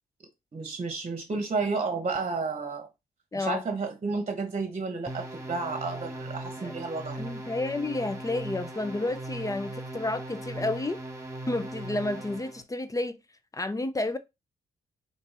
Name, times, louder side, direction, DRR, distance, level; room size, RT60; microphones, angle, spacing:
voice 1, 0.5-2.9 3.3-7.3, right 4 dB, 35° right, 1.1 m, -31 dB
voice 2, 3.3-3.6 6.6-6.7 7.2-11.0 11.5-13.2 13.5-14.2, left 2 dB, 20° left, 0.7 m, -31 dB
sound 1, 5.1-12.6, right 1 dB, 15° right, 1.3 m, -39 dB
3.8 x 2.6 x 4.0 m
supercardioid pair, 45°, 18 cm